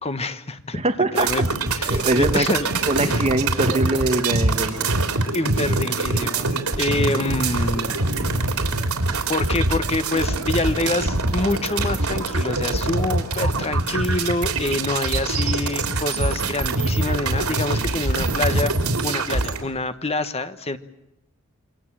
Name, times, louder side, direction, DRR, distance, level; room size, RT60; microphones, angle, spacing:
voice 1, 0.0-0.8 1.1-2.7 3.0-3.2 5.3-6.5 6.8-8.2 9.3-18.7 19.0-20.8, left 2 dB, 30° left, 11 dB, 1.3 m, -26 dB
voice 2, 0.7-1.3 1.9-2.5 2.8-4.9, right 2 dB, 30° right, 5 dB, 2.4 m, -22 dB
sound 1, 1.2-19.6, right 2 dB, 85° right, 3.7 m, -24 dB
28.0 x 24.0 x 7.6 m, 0.85 s
head